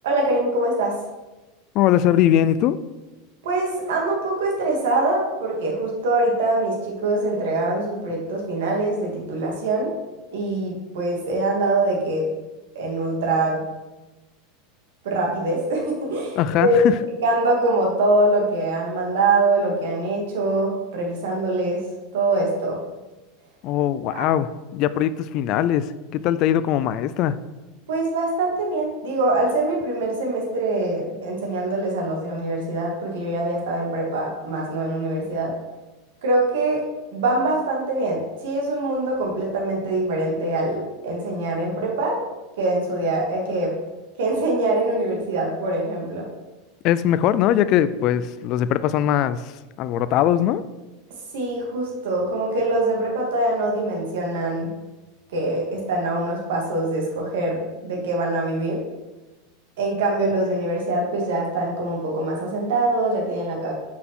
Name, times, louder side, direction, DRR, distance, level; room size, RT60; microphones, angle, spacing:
voice 1, 0.0-0.9 3.4-9.9 10.3-12.3 12.7-13.6 15.0-16.8 17.2-21.8 22.1-22.8 24.1-24.2 27.9-35.5 36.2-36.8 37.1-42.2 42.6-43.7 44.2-46.3 51.3-54.7 55.3-58.8 59.8-63.7, right 2 dB, 80° right, -1 dB, 2.4 m, -23 dB
voice 2, 1.7-2.8 16.4-16.9 23.6-27.4 46.8-50.6, left 11 dB, 45° left, 14 dB, 0.3 m, -21 dB
5.9 x 5.7 x 6.1 m, 1.1 s
supercardioid pair, 140°, 0 cm